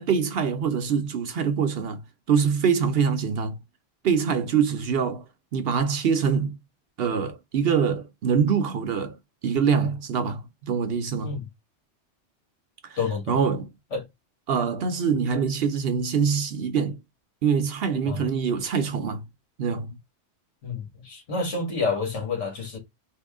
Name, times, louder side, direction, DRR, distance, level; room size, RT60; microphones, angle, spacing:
voice 1, 0.0-2.0 2.3-3.6 4.0-5.2 5.5-6.6 7.0-9.2 9.4-11.3 12.8-13.0 13.3-13.7 14.5-17.0 17.4-19.2 19.6-19.9, right 6 dB, 60° right, 0.8 m, -24 dB
voice 2, 13.0-13.4 13.9-14.0 18.0-18.3 20.6-22.8, left 4 dB, 85° left, 2.1 m, -29 dB
3.5 x 2.9 x 3.5 m
omnidirectional pair, 1.2 m